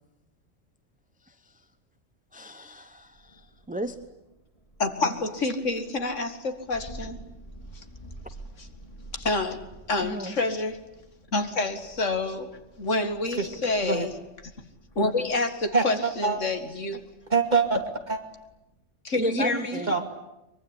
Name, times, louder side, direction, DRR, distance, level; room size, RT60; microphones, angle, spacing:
voice 1, 1.2-1.6 2.3-4.0 10.0-10.4 19.2-19.9, right 1 dB, 5° right, 9 dB, 0.9 m, -35 dB
Thunder, 3.0-18.8, right 1 dB, 25° left, 4.4 m, -49 dB
voice 2, 4.8-7.2 7.7-7.8 8.6-8.7 9.1-9.6 9.9-10.8 11.3-12.5 12.8-14.1 15.0-17.0 19.0-19.8, left 2 dB, 70° left, 7 dB, 2.5 m, -28 dB
voice 3, 15.7-16.4 17.3-18.2 19.9-20.1, right 4 dB, 35° right, 5 dB, 2.7 m, -25 dB
23.5 x 23.0 x 10.0 m, 0.92 s
omnidirectional pair, 1.3 m